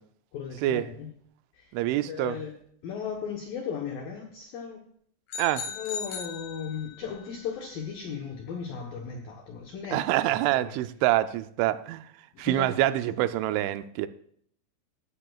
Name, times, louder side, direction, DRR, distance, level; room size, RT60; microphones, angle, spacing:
voice 1, 0.3-1.1 1.5-1.7 2.0-2.6 2.8-4.8 5.7-10.8 12.3-12.8 13.1-13.3, left 7 dB, 80° left, 1 dB, 2.0 m, -36 dB
voice 2, 1.7-2.4 5.4-5.6 9.9-12.1 12.4-14.1, right 15 dB, 85° right, 12 dB, 2.9 m, -26 dB
sound 1, 5.3-7.1, left 6 dB, 60° left, 2.9 m, -37 dB
16.0 x 12.0 x 2.3 m, 0.64 s
omnidirectional pair, 5.6 m